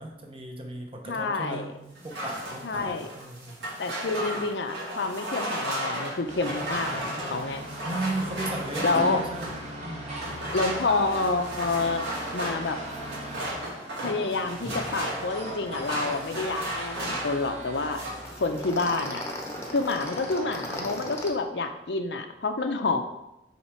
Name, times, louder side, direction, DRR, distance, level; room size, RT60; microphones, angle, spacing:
voice 1, 0.0-3.6 7.8-9.6 9.8-10.5, right 2 dB, 30° right, 2 dB, 1.0 m, -36 dB
voice 2, 1.1-1.7 2.6-3.1 3.8-7.7 8.8-9.2 10.5-12.0 12.3-12.8 14.0-18.0 18.4-19.2 19.7-23.0, left 3 dB, 80° left, 7 dB, 0.6 m, -28 dB
sound 1, 1.9-9.7 10.2-17.5 17.7-18.3, right 1 dB, 85° right, 2.3 m, -34 dB
sound 2, 6.3-21.3, right 1 dB, 45° right, 1.8 m, -39 dB
sound 3, 12.4-12.5 12.8-13.0 13.2-13.4 18.2-21.3, left 1 dB, 15° left, 0.9 m, -37 dB
5.7 x 4.4 x 4.4 m, 0.89 s
head